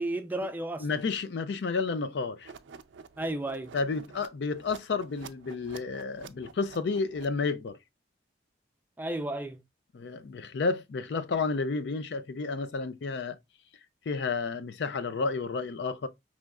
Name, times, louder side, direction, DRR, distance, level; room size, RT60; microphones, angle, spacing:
voice 1, 0.0-0.9 3.2-3.7 9.0-9.6, right 1 dB, 10° right, 0.4 m, -33 dB
voice 2, 0.8-2.5 3.7-7.8 9.9-13.4 14.1-16.1, left 4 dB, 65° left, 0.4 m, -31 dB
sound 1, 2.4-7.7, right 6 dB, 75° right, 0.4 m, -49 dB
4.8 x 3.1 x 2.2 m
head